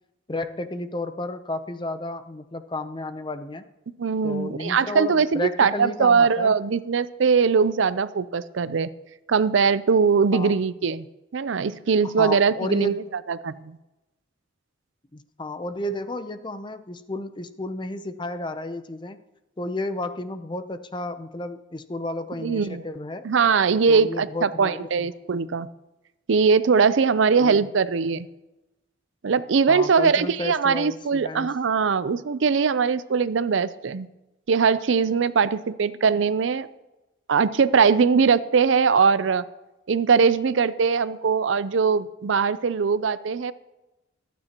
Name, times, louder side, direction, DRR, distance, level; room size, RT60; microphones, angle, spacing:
voice 1, 0.3-3.6 4.2-6.5 10.3-10.5 12.0-13.2 15.1-19.2 19.6-23.3 23.9-25.1 27.4-27.7 29.7-31.5, left 1 dB, 25° left, 10 dB, 0.6 m, -32 dB
voice 2, 4.0-8.9 9.3-11.1 11.3-12.9 13.3-13.8 22.4-22.8 23.2-25.7 26.3-28.3 29.2-34.1 34.5-36.7 37.3-39.4 39.9-43.5, right 5 dB, 75° right, 15 dB, 0.5 m, -21 dB
25.5 x 9.4 x 2.9 m, 1.0 s
head